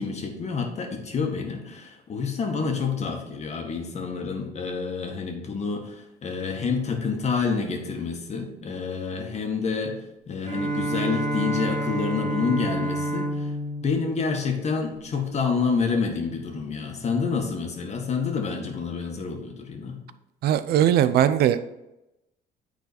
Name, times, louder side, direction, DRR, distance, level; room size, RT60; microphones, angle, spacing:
voice 1, 0.0-13.5 13.8-20.0, left 5 dB, 40° left, 3 dB, 1.6 m, -28 dB
Bowed string instrument, 10.4-15.2, right 1 dB, 40° right, 2.2 m, -29 dB
voice 2, 20.4-21.6, right 10 dB, 70° right, 13 dB, 0.6 m, -20 dB
9.6 x 4.1 x 4.3 m, 0.91 s
cardioid pair, 110°, 17 cm